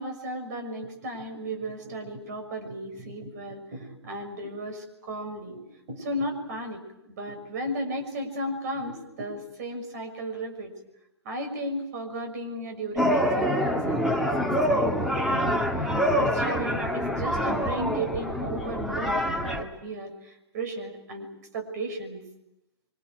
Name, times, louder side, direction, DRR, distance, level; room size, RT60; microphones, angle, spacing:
voice 1, 0.0-6.8 7.1-10.7 11.2-15.6 16.1-21.3 21.5-22.2, right 1 dB, 40° right, 5 dB, 6.6 m, -35 dB
sound 1, 13.0-19.6, equal, ahead, 1.9 m, -25 dB
30.0 x 25.5 x 6.4 m, 0.88 s
figure-of-eight pair, 125°, 14 cm